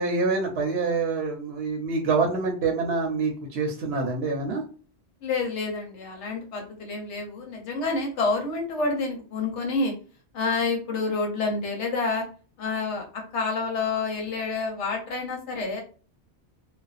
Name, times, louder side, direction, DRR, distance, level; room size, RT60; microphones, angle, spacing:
voice 1, 0.0-4.6, right 4 dB, 70° right, 1 dB, 0.8 m, -26 dB
voice 2, 5.2-9.9 10.3-12.2 12.6-15.8, left 3 dB, 80° left, 1 dB, 1.1 m, -28 dB
2.5 x 2.1 x 2.3 m, 0.39 s
omnidirectional pair, 1.2 m